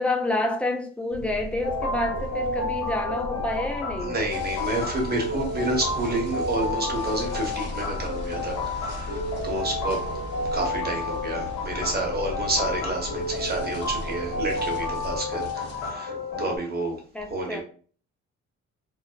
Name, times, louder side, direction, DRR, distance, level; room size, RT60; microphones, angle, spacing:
voice 1, 0.0-4.2 17.1-17.6, left 1 dB, 5° left, 0.3 m, -28 dB
sound 1, 1.1-15.2, left 1 dB, 50° right, 0.5 m, -38 dB
sound 2, 1.6-16.6, left 2 dB, 90° left, 1.1 m, -31 dB
voice 2, 4.0-10.0 10.5-17.0 17.3-17.6, right 2 dB, 30° right, 0.9 m, -29 dB
sound 3, 4.3-15.9, equal, 55° left, 0.9 m, -42 dB
2.6 x 2.0 x 2.3 m
cardioid pair, 90°, 30 cm